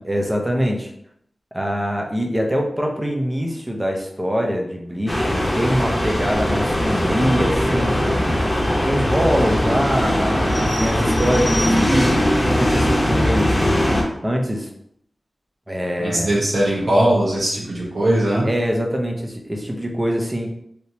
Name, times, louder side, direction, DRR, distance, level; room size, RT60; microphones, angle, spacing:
voice 1, 0.0-0.9 1.5-8.3 8.9-13.6 14.2-14.7 15.7-16.3 18.4-20.5, equal, 20° right, 1 dB, 0.8 m, -23 dB
sound 1, 5.1-14.0, left 1 dB, 25° left, 1.0 m, -20 dB
voice 2, 16.0-18.5, right 1 dB, 80° right, -5 dB, 1.3 m, -19 dB
3.4 x 2.8 x 2.8 m, 0.72 s
cardioid pair, 50°, 0 cm